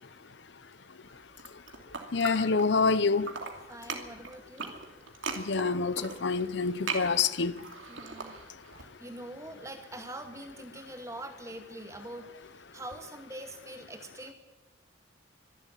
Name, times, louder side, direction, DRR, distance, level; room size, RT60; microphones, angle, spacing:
sound 1, 1.3-2.9 3.2-8.8, right 4 dB, 80° right, 2.8 m, -39 dB
voice 1, 2.1-3.3 5.4-7.6, left 4 dB, 65° left, 0.8 m, -27 dB
voice 2, 3.7-4.8 7.9-8.4 8.8-14.3, right 1 dB, 15° right, 2.2 m, -44 dB
24.5 x 11.5 x 9.2 m
head